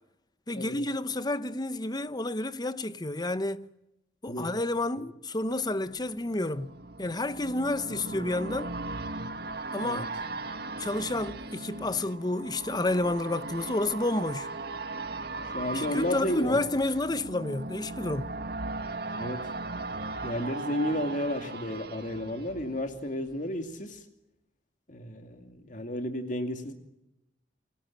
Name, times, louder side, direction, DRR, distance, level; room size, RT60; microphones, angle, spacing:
voice 1, 0.5-3.7 4.2-6.7 7.0-8.7 9.7-10.1 10.8-14.5 15.7-18.3, left 2 dB, 20° left, 0.9 m, -30 dB
sound 1, 5.5-23.3 23.7-23.8, right 2 dB, 60° right, 1.8 m, -38 dB
voice 2, 15.5-16.6 19.2-19.5 20.2-24.0 24.9-26.7, left 1 dB, 45° left, 2.5 m, -32 dB
30.0 x 19.0 x 8.7 m
head